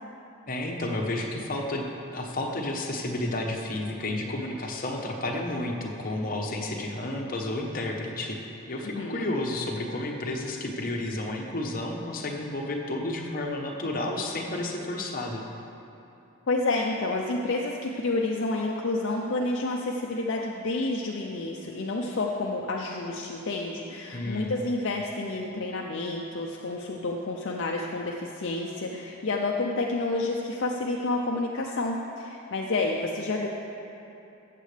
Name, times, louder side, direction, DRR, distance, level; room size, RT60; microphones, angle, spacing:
voice 1, 0.5-8.4 8.7-15.4 24.1-24.5, left 1 dB, 40° left, 1 dB, 1.0 m, -31 dB
voice 2, 8.9-9.3 16.5-33.5, left 2 dB, 60° left, -1 dB, 0.6 m, -29 dB
14.5 x 7.5 x 3.4 m, 3.0 s
head